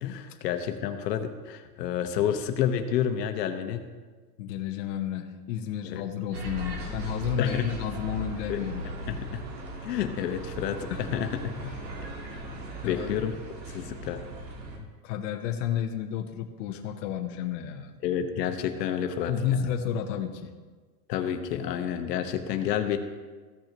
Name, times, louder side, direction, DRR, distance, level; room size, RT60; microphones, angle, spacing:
voice 1, 0.0-3.8 5.8-6.0 7.4-7.6 8.5-8.6 9.0-9.4 9.8-11.5 12.3-12.4 12.8-13.4 13.7-14.2 18.0-19.7 21.1-23.0, left 9 dB, 75° left, 7 dB, 1.1 m, -29 dB
voice 2, 4.4-8.8 10.9-11.1 11.6-11.8 12.8-13.2 14.8-17.9 19.3-20.5, left 9 dB, 50° left, 4 dB, 0.9 m, -31 dB
sound 1, 6.3-14.8, right 1 dB, 85° right, 2.2 m, -38 dB
15.0 x 6.3 x 3.0 m, 1.4 s
supercardioid pair, 145°, 50 cm